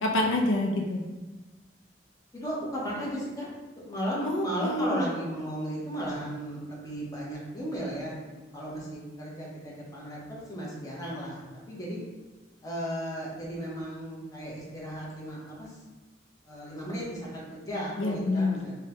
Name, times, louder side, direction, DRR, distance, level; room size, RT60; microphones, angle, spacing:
voice 1, 0.0-1.0 4.2-5.0 18.0-18.6, left 2 dB, 80° left, 1 dB, 0.4 m, -27 dB
voice 2, 2.3-3.5 3.8-11.4 11.7-12.0 12.6-15.8 16.4-18.8, equal, 20° left, -5 dB, 0.7 m, -35 dB
3.5 x 2.1 x 2.8 m, 1.2 s
head